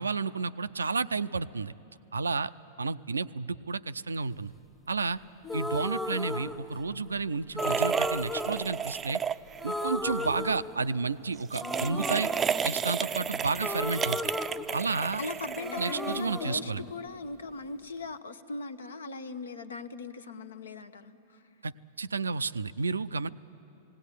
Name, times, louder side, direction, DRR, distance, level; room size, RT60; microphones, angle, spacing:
voice 1, 0.0-1.7 2.1-2.5 2.8-4.5 4.9-5.2 5.5-9.2 9.6-12.3 12.6-14.2 14.7-15.2 15.8-16.8 21.6-21.7 22.0-23.3, right 4 dB, 90° right, 16 dB, 0.4 m, -31 dB
sound 1, 5.4-7.1 7.5-9.3 9.6-11.2 11.5-15.3 15.5-17.6, left 2 dB, 5° left, 0.9 m, -36 dB
sound 2, 7.6-9.8 10.1-10.3 11.4-16.4, right 7 dB, 25° right, 0.4 m, -32 dB
voice 2, 15.2-21.4, left 3 dB, 85° left, 10 dB, 0.9 m, -39 dB
18.0 x 17.5 x 9.9 m, 2.9 s
hypercardioid pair, 100°, 0 cm